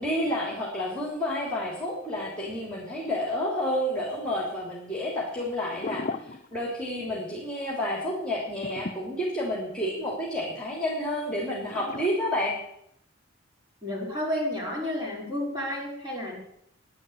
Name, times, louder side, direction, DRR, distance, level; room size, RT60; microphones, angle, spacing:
voice 1, 0.0-6.1 6.5-12.5, left 1 dB, 5° left, -3 dB, 3.3 m, -30 dB
sound 1, 5.6-7.0 7.3-7.5 8.6-9.9 11.7-12.1, left 3 dB, 40° left, 0.7 m, -37 dB
voice 2, 13.8-16.4, left 1 dB, 25° right, -3 dB, 5.4 m, -31 dB
11.5 x 10.5 x 8.1 m, 0.73 s
head